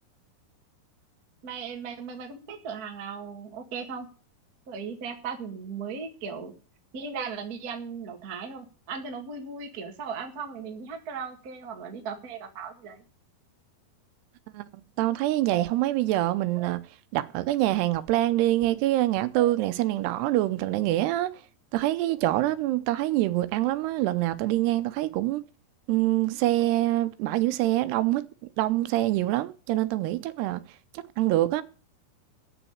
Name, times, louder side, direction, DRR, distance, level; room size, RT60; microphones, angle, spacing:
voice 1, 1.4-4.1 4.7-6.5 6.9-13.0, right 5 dB, 50° right, 1.1 m, -37 dB
voice 2, 14.5-16.8 17.1-21.4 21.7-25.4 25.9-28.2 28.6-30.6 30.9-31.6, right 15 dB, 90° right, 2.9 m, -25 dB
9.4 x 7.2 x 8.6 m
omnidirectional pair, 4.7 m